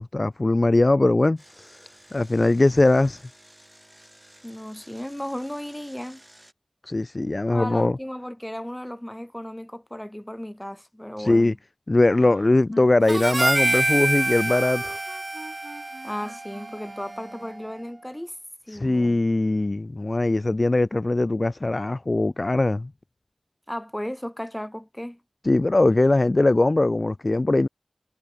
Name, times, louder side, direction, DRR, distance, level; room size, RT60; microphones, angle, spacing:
voice 1, 0.0-1.7 2.1-3.2 6.8-8.0 11.2-11.5 11.9-15.0 18.7-22.9 25.4-27.7, left 2 dB, 50° left, 0.4 m, -21 dB
Engine, 1.4-6.5, right 1 dB, 15° right, 2.9 m, -53 dB
voice 2, 4.4-6.2 7.5-11.6 16.0-18.3 18.7-19.2 23.7-25.2, equal, 10° left, 0.9 m, -35 dB
sound 1, 12.1-17.8, right 3 dB, 70° right, 1.3 m, -45 dB
Harmonica, 13.1-17.6, right 2 dB, 45° right, 0.8 m, -27 dB
wide cardioid pair, 55°, 0 cm